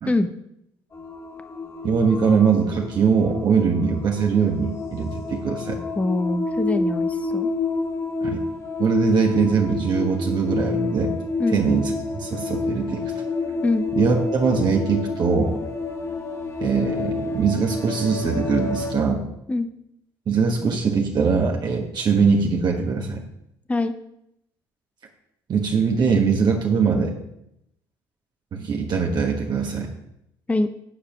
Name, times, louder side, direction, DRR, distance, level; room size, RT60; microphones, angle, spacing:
sound 1, 0.9-18.9, left 4 dB, 30° left, 1.8 m, -29 dB
voice 1, 1.8-5.8 8.2-8.4 8.8-11.1 11.5-13.1 13.9-15.6 16.6-19.2 20.3-23.2 25.5-27.1 28.5-29.9, right 5 dB, 45° right, 0 dB, 1.4 m, -21 dB
voice 2, 6.0-7.5 11.4-11.6 13.6-13.8 19.5-19.7 23.7-23.9 30.5-30.7, left 2 dB, 15° left, 10 dB, 0.7 m, -23 dB
9.9 x 4.9 x 5.9 m, 0.79 s
supercardioid pair, 70°, 10 cm